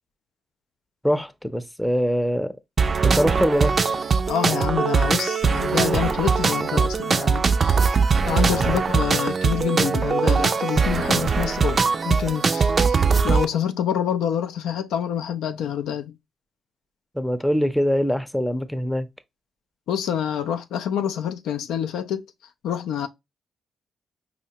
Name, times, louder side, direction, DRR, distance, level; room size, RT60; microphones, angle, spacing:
voice 1, 1.0-2.6 3.0-4.0 8.4-8.8 17.1-19.1, equal, 5° left, 0.5 m, -23 dB
sound 1, 2.8-13.5, right 5 dB, 50° right, 0.4 m, -21 dB
voice 2, 4.3-7.8 8.3-16.1 19.9-22.2 22.6-23.1, left 9 dB, 85° left, 0.3 m, -27 dB
4.8 x 2.2 x 2.7 m
supercardioid pair, 50°, 0 cm